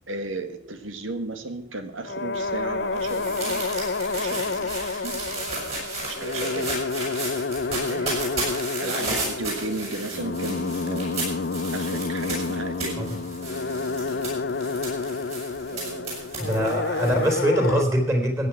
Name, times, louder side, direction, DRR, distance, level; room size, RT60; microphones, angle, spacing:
voice 1, 0.1-6.7 7.9-8.4 8.7-11.4 11.7-13.0 15.7-16.3, right 2 dB, 80° right, 8 dB, 1.9 m, -35 dB
sound 1, 2.0-17.8, left 3 dB, 55° left, 0.5 m, -29 dB
sound 2, 2.3-17.4, right 3 dB, 30° right, 7.1 m, -34 dB
voice 2, 16.4-18.5, right 1 dB, 15° right, 3 dB, 3.4 m, -23 dB
15.5 x 9.5 x 6.0 m, 0.69 s
head